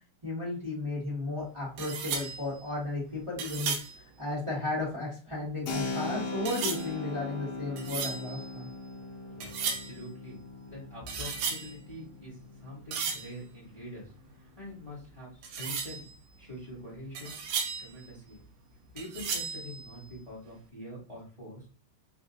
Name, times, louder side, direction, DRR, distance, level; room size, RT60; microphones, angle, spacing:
voice 1, 0.2-3.7 4.2-8.7, left 2 dB, 30° right, -9 dB, 0.5 m, -34 dB
sound 1, 1.4-1.5 1.8-4.9 5.3-5.9 6.4-9.0 9.3-10.1 10.4-12.1 12.4-14.4 14.6-14.8 15.0-15.2 15.4-18.7 19.0-20.5, right 6 dB, 75° right, 2.2 m, -36 dB
Keyboard (musical), 5.7-14.0, left 3 dB, 70° left, 2.3 m, -40 dB
voice 2, 9.2-10.4 10.7-14.1 14.6-16.0 16.4-17.4 17.8-18.4 18.9-21.8, left 1 dB, 20° left, -7 dB, 1.0 m, -45 dB
5.8 x 2.5 x 2.6 m, 0.38 s
omnidirectional pair, 4.2 m